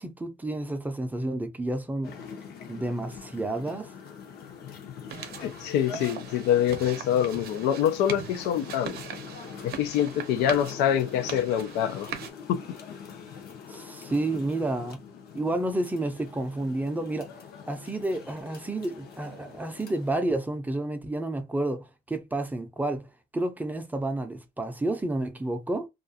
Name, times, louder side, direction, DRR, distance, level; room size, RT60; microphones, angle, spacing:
voice 1, 0.0-2.2 2.7-3.9 13.7-15.0 15.3-17.3 17.7-23.1 23.3-25.9, right 2 dB, 10° right, 0.5 m, -30 dB
sound 1, 2.0-20.1, left 7 dB, 65° left, 0.8 m, -44 dB
sound 2, 5.1-12.3, right 8 dB, 65° right, 0.6 m, -41 dB
voice 2, 5.4-9.0 9.6-12.1 12.5-12.6, left 10 dB, 90° left, 0.4 m, -25 dB
2.4 x 2.3 x 2.6 m
cardioid pair, 110°, 17 cm